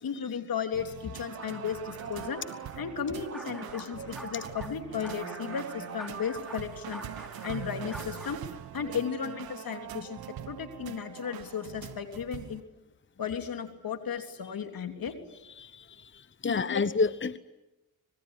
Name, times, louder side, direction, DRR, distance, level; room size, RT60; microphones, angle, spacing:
voice 1, 0.0-2.4 2.8-7.0 7.4-8.4 8.7-10.2 10.5-12.6 13.2-15.1 16.4-16.8, left 7 dB, 75° left, 6 dB, 3.4 m, -35 dB
sound 1, 0.7-12.6, right 11 dB, 90° right, 1.2 m, -43 dB
sound 2, 1.2-8.6, right 4 dB, 45° right, 3.9 m, -46 dB
sound 3, 3.3-3.9 4.1-4.7 5.0-8.4, equal, ahead, 5.4 m, -47 dB
voice 2, 15.6-17.4, left 4 dB, 35° left, 14 dB, 1.0 m, -30 dB
25.5 x 22.5 x 9.9 m, 0.99 s
cardioid pair, 55°, 35 cm